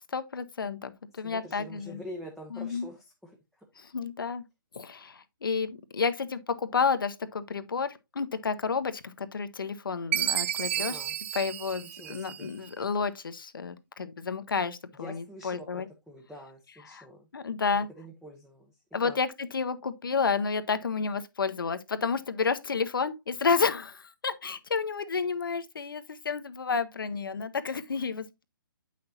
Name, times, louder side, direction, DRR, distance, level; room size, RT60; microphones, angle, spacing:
voice 1, 0.1-2.0 2.5-2.9 3.9-4.4 4.7-11.0 11.3-15.9 16.9-17.0 17.3-17.9 18.9-28.4, left 5 dB, 70° left, 0.9 m, -31 dB
voice 2, 1.1-3.7 10.8-11.1 11.8-12.5 15.0-17.3 17.7-19.2, equal, ahead, 0.7 m, -46 dB
Chime, 10.1-12.7, right 11 dB, 35° right, 0.4 m, -31 dB
8.5 x 5.9 x 2.8 m
figure-of-eight pair, 140°, 12 cm